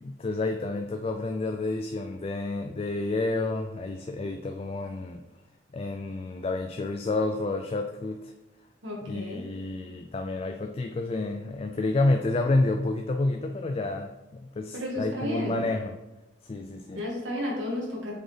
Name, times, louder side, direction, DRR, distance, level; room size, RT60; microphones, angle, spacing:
voice 1, 0.0-5.2 5.7-8.3 9.1-14.1 14.4-15.9 16.4-17.0, left 2 dB, 30° left, 5 dB, 0.3 m, -29 dB
voice 2, 8.8-9.5 14.7-15.6 16.9-18.1, left 1 dB, 80° right, -3 dB, 1.8 m, -32 dB
7.7 x 4.3 x 3.3 m, 1.0 s
head